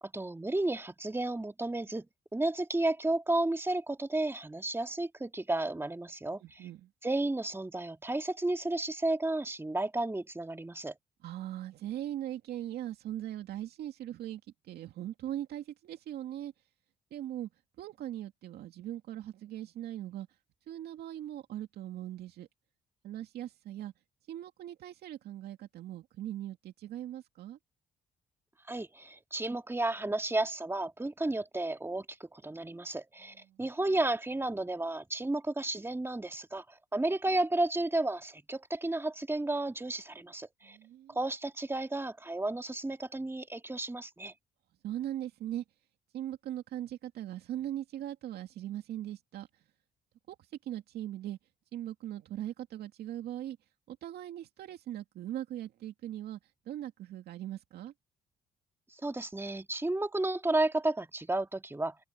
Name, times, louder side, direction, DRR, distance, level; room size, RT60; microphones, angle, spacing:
voice 1, 0.0-2.1 2.3-6.7 7.0-10.9 28.7-40.8 41.1-44.3 58.9-62.0, right 2 dB, 15° right, 2.3 m, -32 dB
voice 2, 6.4-6.9 11.2-16.5 17.1-17.5 17.8-20.3 20.7-22.5 23.0-23.9 24.3-27.6 33.5-33.6 40.6-41.2 44.8-45.6 46.1-49.6 50.3-51.4 51.7-53.6 53.9-56.4 56.7-57.9, right 12 dB, 75° right, 2.3 m, -40 dB
open air
supercardioid pair, 60°, 17 cm